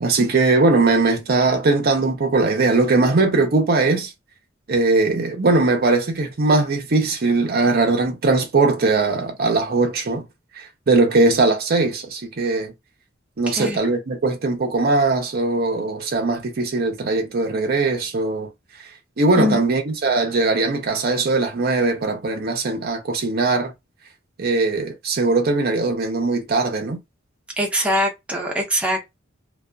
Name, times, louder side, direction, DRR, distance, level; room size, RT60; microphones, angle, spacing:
voice 1, 0.0-4.1 4.7-10.2 10.5-12.7 13.4-18.5 19.2-23.7 24.4-27.0, right 3 dB, 50° right, 0.6 m, -20 dB
voice 2, 13.5-13.8 19.4-19.6 27.6-29.2, equal, 5° right, 0.7 m, -23 dB
2.4 x 2.3 x 2.2 m
head